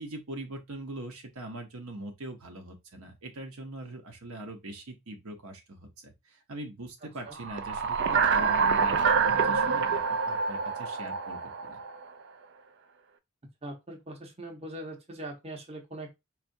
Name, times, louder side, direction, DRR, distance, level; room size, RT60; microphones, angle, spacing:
voice 1, 0.0-11.8, right 1 dB, 70° right, 0.8 m, -42 dB
sound 1, 7.4-12.0, right 5 dB, 50° right, 0.3 m, -26 dB
voice 2, 13.6-16.2, right 1 dB, 30° right, 0.8 m, -41 dB
4.5 x 2.4 x 2.6 m
head